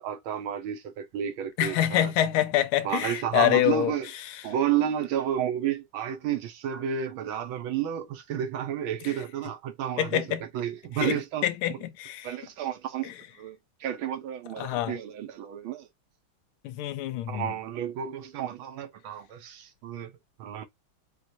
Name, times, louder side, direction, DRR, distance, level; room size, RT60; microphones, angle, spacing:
voice 1, 0.0-2.1 2.8-4.1 4.4-10.2 10.5-11.4 12.2-13.1 13.4-15.9 17.3-20.1 20.4-20.7, right 10 dB, 75° right, 1.5 m, -31 dB
voice 2, 1.6-3.9 4.2-4.4 9.0-9.1 10.0-10.5 10.9-12.3 13.0-13.1 14.6-15.0 16.6-17.5, left 12 dB, 80° left, 1.4 m, -26 dB
4.5 x 2.4 x 2.6 m
omnidirectional pair, 2.4 m